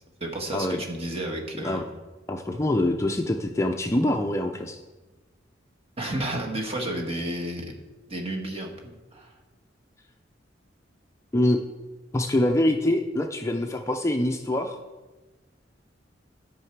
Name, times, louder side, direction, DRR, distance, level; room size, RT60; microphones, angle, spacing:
voice 1, 0.2-1.9 6.0-7.8 8.1-9.3, right 1 dB, 30° right, 1 dB, 1.4 m, -32 dB
voice 2, 2.3-4.8 11.3-11.6 12.1-14.8, left 1 dB, 15° left, 4 dB, 0.4 m, -24 dB
13.0 x 5.7 x 4.7 m, 1.2 s
head